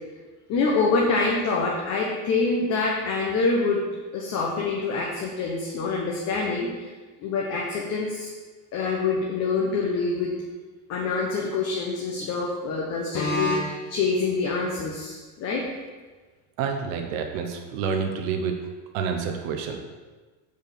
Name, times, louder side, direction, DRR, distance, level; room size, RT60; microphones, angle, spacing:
voice 1, 0.5-3.8 4.1-6.9 7.2-8.3 8.7-10.3 10.9-15.6, left 3 dB, 35° left, -2 dB, 1.1 m, -25 dB
voice 2, 16.6-18.5 18.9-19.8, right 6 dB, 75° right, 3 dB, 1.1 m, -28 dB
6.1 x 5.3 x 6.8 m, 1.3 s
cardioid pair, 165°, 42 cm